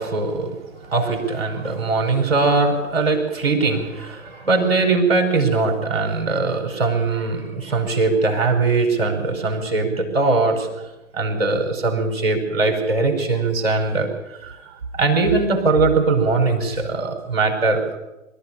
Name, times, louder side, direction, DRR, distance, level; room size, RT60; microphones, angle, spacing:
voice 1, 0.0-10.7 11.1-14.1 14.4-14.6 14.9-18.0, right 3 dB, 40° right, 4 dB, 5.1 m, -21 dB
23.5 x 14.0 x 8.7 m, 0.97 s
figure-of-eight pair, 140°, 42 cm